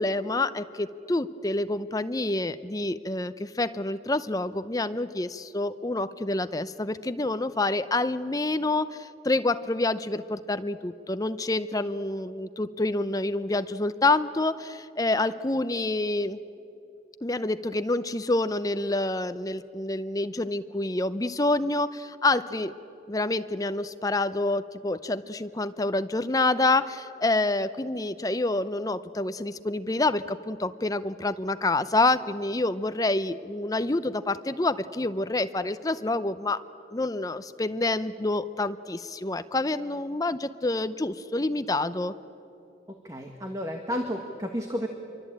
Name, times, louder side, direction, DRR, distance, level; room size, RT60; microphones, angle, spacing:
voice 1, 0.0-16.4 17.2-22.7 23.1-36.6 36.9-42.1, left 2 dB, 20° left, 12 dB, 0.7 m, -27 dB
voice 2, 43.0-44.9, equal, 20° right, 3 dB, 1.6 m, -32 dB
26.5 x 23.5 x 8.8 m, 2.7 s
head